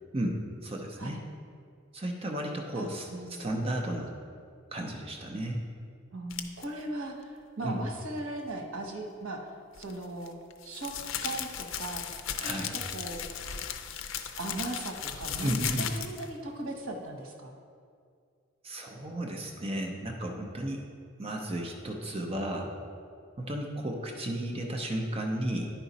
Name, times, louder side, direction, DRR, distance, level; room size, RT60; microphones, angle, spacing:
voice 1, 0.1-1.2 1.9-4.1 4.7-5.6 7.6-7.8 12.4-12.7 15.4-15.9 18.6-20.8 21.2-22.7 23.4-25.7, right 1 dB, 30° right, 1 dB, 0.6 m, -33 dB
voice 2, 2.7-3.5 6.1-7.3 7.6-9.4 9.7-10.4 10.6-10.9 11.2-12.1 12.4-13.3 14.4-17.6, right 2 dB, 85° right, 2 dB, 1.1 m, -38 dB
sound 1, 6.3-6.6 9.7-16.3, left 8 dB, 70° left, 0.5 m, -36 dB
10.0 x 4.9 x 4.1 m, 2.2 s
head